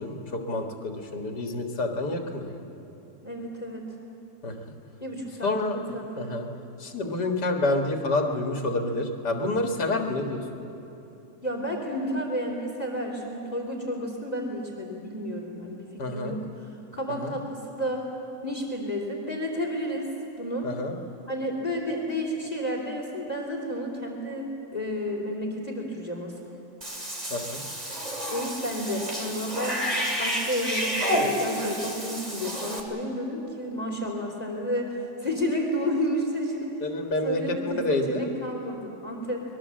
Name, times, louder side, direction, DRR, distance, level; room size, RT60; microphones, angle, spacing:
voice 1, 0.0-2.6 4.4-4.8 5.4-5.8 6.2-6.5 6.8-10.6 16.0-16.3 17.2-17.3 20.6-21.0 27.3-27.6 36.8-38.3, left 2 dB, 75° left, 3 dB, 2.3 m, -28 dB
voice 2, 3.2-3.9 5.0-6.3 11.4-18.0 18.4-20.1 20.4-20.7 21.3-26.4 28.3-29.8 30.2-36.7 37.2-39.4, equal, 20° left, 0 dB, 3.1 m, -31 dB
Cat / Bathtub (filling or washing), 26.8-32.8, equal, 25° right, 2.7 m, -30 dB
25.5 x 21.5 x 7.6 m, 2.9 s
omnidirectional pair, 1.8 m